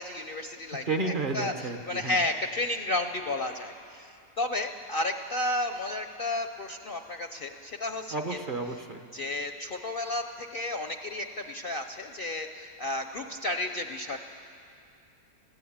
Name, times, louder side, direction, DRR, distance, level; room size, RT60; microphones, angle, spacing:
voice 1, 0.0-8.4 9.1-14.2, left 2 dB, 50° left, 6 dB, 0.7 m, -32 dB
voice 2, 0.9-2.2 8.1-9.1, right 3 dB, 40° right, 5 dB, 1.0 m, -32 dB
20.0 x 15.5 x 8.6 m, 2.5 s
omnidirectional pair, 1.6 m